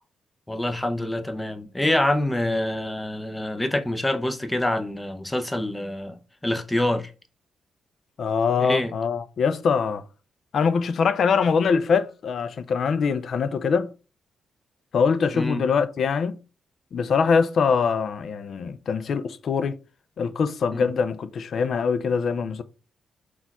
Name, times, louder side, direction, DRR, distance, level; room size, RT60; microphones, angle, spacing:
voice 1, 0.5-6.2 6.4-7.1 8.6-8.9 15.3-15.7 20.7-20.8, left 1 dB, 10° left, 0.6 m, -26 dB
voice 2, 8.2-10.0 10.5-13.9 14.9-16.4 16.9-19.8 20.2-22.6, left 5 dB, 60° left, 0.4 m, -23 dB
4.2 x 2.3 x 4.1 m
cardioid pair, 110°, 0 cm